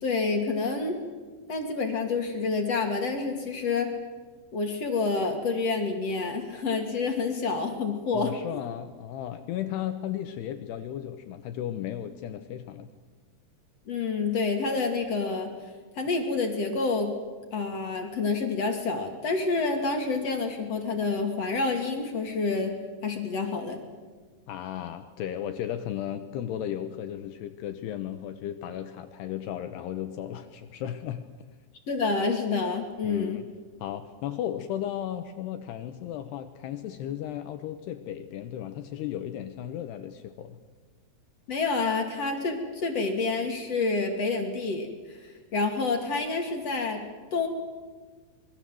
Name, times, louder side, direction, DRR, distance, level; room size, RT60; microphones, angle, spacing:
voice 1, 0.0-1.0 1.5-3.9 4.5-8.3 13.9-15.5 16.0-17.1 17.5-22.7 23.0-23.8 31.9-33.4 41.5-47.5, left 4 dB, 40° left, 4 dB, 2.9 m, -28 dB
voice 2, 8.1-12.9 24.5-31.3 33.0-33.5 33.8-40.6, left 11 dB, 75° left, 9 dB, 2.9 m, -35 dB
26.5 x 22.5 x 7.7 m, 1.4 s
omnidirectional pair, 5.1 m